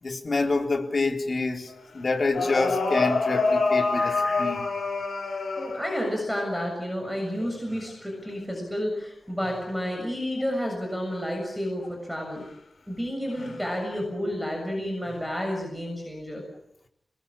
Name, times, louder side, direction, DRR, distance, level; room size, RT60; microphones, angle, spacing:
voice 1, 0.0-4.6, left 3 dB, 45° left, 3 dB, 3.8 m, -27 dB
sound 1, 1.7-1.8 2.3-6.1 7.4-7.8 9.4-9.6 13.4-13.7 15.1-15.2, left 3 dB, 80° left, 5.7 m, -26 dB
voice 2, 5.6-12.4 12.9-16.4, equal, ahead, 1 dB, 7.0 m, -30 dB
27.5 x 20.5 x 8.8 m, 0.78 s
wide cardioid pair, 125°, 0 cm